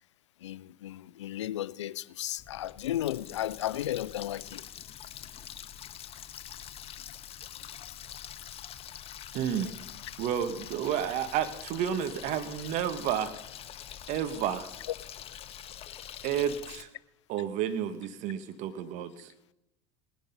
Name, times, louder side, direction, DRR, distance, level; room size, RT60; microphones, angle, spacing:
voice 1, 0.4-4.7, left 13 dB, 85° left, 0.5 m, -34 dB
Water tap faucet, 2.4-16.8, left 10 dB, 40° left, 1.0 m, -45 dB
voice 2, 9.3-9.7 10.2-13.3 14.1-14.7 16.2-16.9 17.3-19.3, right 9 dB, 55° right, 1.5 m, -31 dB
18.5 x 10.5 x 5.5 m
hypercardioid pair, 85°, 15 cm